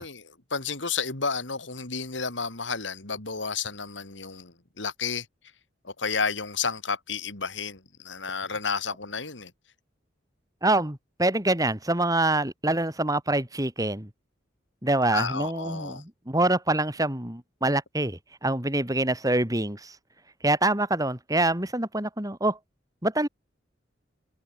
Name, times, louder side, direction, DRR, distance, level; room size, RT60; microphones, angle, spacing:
voice 1, 0.0-5.3 5.8-9.5 15.1-16.0, left 5 dB, 85° left, 4.1 m, -31 dB
voice 2, 10.6-14.1 14.8-19.9 20.4-22.6 23.0-23.3, right 2 dB, 20° right, 4.4 m, -25 dB
head